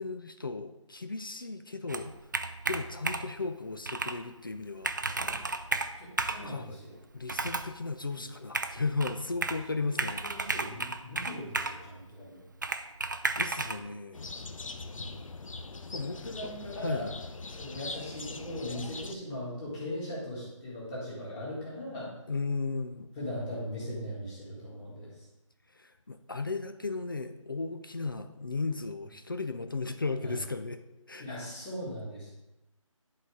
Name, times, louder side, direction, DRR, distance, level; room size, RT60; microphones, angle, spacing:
voice 1, 0.0-2.1 2.7-5.2 6.4-6.8 7.1-10.2 13.4-14.3 15.9-17.1 22.3-23.1 25.7-30.8 31.1-31.3, left 3 dB, 40° left, 9 dB, 0.4 m, -35 dB
Computer keyboard, 1.9-3.4 3.9-4.2 4.5-4.6 4.8-6.5 7.3-7.7 8.5-9.7 10.0-11.8 12.6-13.8, right 3 dB, 35° right, 0.4 m, -33 dB
voice 2, 6.0-6.9 10.2-12.4 14.9-15.2 15.9-17.1 17.5-22.1 23.1-25.2 30.2-30.4 31.2-32.3, left 1 dB, 10° left, -7 dB, 1.6 m, -39 dB
sound 1, 14.1-19.1, left 3 dB, 75° left, 0.7 m, -42 dB
10.5 x 4.0 x 4.8 m, 0.96 s
figure-of-eight pair, 170°, 17 cm